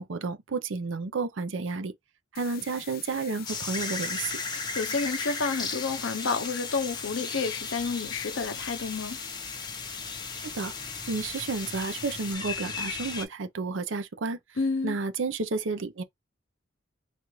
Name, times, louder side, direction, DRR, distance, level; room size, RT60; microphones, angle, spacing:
voice 1, 0.0-1.9 2.3-4.4 10.4-10.7 11.1-14.4 14.8-16.0, right 4 dB, 80° right, 0.6 m, -31 dB
sound 1, 2.3-12.3, left 12 dB, 50° left, 0.5 m, -46 dB
sound 2, 3.5-13.3, left 4 dB, 20° left, 0.8 m, -36 dB
voice 2, 4.5-9.2 14.6-15.0, left 4 dB, 90° left, 0.7 m, -30 dB
4.1 x 2.4 x 3.1 m
head